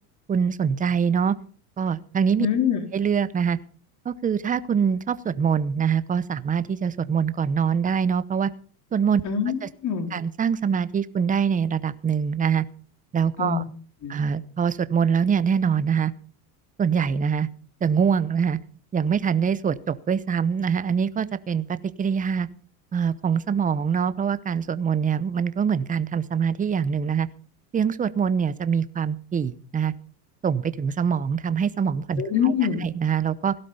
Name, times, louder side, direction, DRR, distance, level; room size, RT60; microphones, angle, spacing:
voice 1, 0.3-1.4 1.8-2.5 2.9-3.6 4.0-8.5 8.9-9.2 9.6-9.7 10.1-12.6 13.1-13.6 14.1-16.1 16.8-17.5 17.8-18.6 18.9-22.5 22.9-27.3 27.7-29.9 30.4-32.2 32.8-33.6, right 7 dB, 15° right, 15 dB, 0.8 m, -24 dB
voice 2, 2.4-2.8 9.2-10.2 13.4-13.6 14.0-14.2 32.2-32.9, left 8 dB, 35° left, 6 dB, 3.9 m, -24 dB
17.5 x 12.5 x 5.5 m, 0.43 s
supercardioid pair, 120°, 47 cm